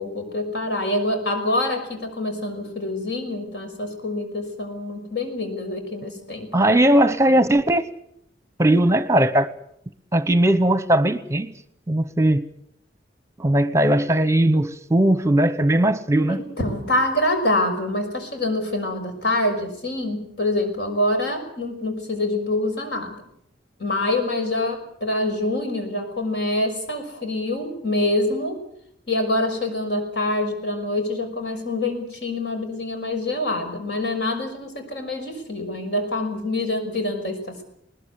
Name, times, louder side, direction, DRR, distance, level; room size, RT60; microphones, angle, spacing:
voice 1, 0.0-6.8 7.2-7.3 16.3-23.2 23.8-28.6 29.1-37.6, left 1 dB, 70° left, 6.0 m, -26 dB
voice 2, 6.5-7.9 8.6-9.5 10.1-11.5 11.9-12.5 13.4-16.4, right 1 dB, 15° right, 0.9 m, -18 dB
21.0 x 19.5 x 8.2 m
head